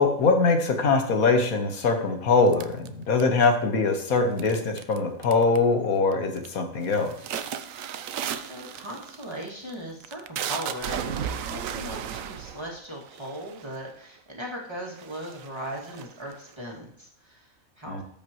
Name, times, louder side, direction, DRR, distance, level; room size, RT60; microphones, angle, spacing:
voice 1, 0.0-7.1 17.9-18.0, left 4 dB, 85° left, 4 dB, 1.7 m, -22 dB
sound 1, 2.5-3.6 4.4-5.0 5.2-5.7 6.1-6.5 6.8-13.9 14.5-14.6 14.9-16.5, right 8 dB, 75° right, 1.0 m, -35 dB
voice 2, 8.4-11.1 11.4-18.0, equal, 20° right, -3 dB, 2.2 m, -38 dB
13.5 x 5.5 x 3.1 m, 0.67 s
omnidirectional pair, 1.4 m